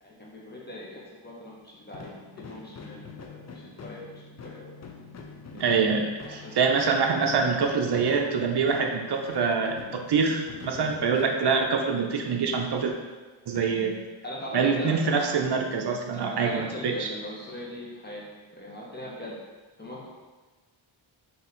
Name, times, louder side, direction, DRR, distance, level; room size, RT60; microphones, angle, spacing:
voice 1, 0.0-4.7 5.5-5.7 6.2-6.7 10.7-11.4 13.5-13.9 14.2-15.3 16.1-18.2 18.5-19.3 19.8-20.1, left 1 dB, 20° left, -5 dB, 1.1 m, -41 dB
sound 1, 1.9-12.1, left 5 dB, 35° left, 0.4 m, -45 dB
voice 2, 5.5-12.9 13.5-13.9 14.5-17.1, right 5 dB, 55° right, 2 dB, 0.6 m, -25 dB
3.9 x 2.8 x 4.3 m, 1.3 s
wide cardioid pair, 100°, 49 cm